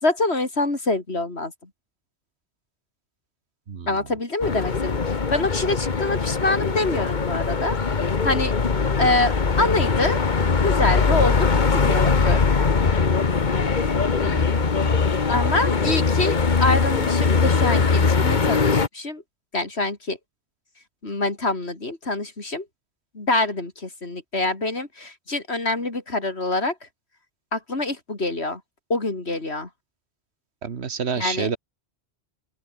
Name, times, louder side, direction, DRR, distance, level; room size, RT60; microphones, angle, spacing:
voice 1, 0.0-1.5 3.9-7.8 8.0-8.5 9.0-10.2 10.6-12.4 15.3-19.2 19.5-20.2 21.0-22.7 23.1-26.8 27.5-28.6 28.9-29.7 31.2-31.5, left 2 dB, 70° left, 4.1 m, -25 dB
voice 2, 3.7-4.1 14.2-14.7 30.6-31.6, right 6 dB, 70° right, 1.6 m, -29 dB
sound 1, 4.4-18.9, left 4 dB, 45° left, 1.4 m, -21 dB
open air
omnidirectional pair, 1.1 m